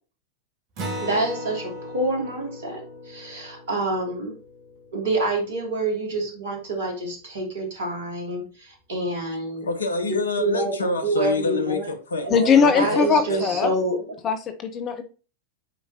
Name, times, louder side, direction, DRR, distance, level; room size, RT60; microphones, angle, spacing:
Acoustic guitar, 0.8-5.7, equal, 40° right, 1.9 m, -37 dB
voice 1, 1.0-2.8 3.1-4.3 4.9-9.7 10.4-11.9 12.3-14.0, right 2 dB, 60° right, 2.3 m, -27 dB
voice 2, 9.6-12.3 12.6-13.6, left 3 dB, 70° left, 1.0 m, -27 dB
voice 3, 12.3-13.7 14.2-15.0, left 5 dB, 30° left, 0.7 m, -20 dB
8.3 x 4.6 x 2.8 m
figure-of-eight pair, 90°, 0 cm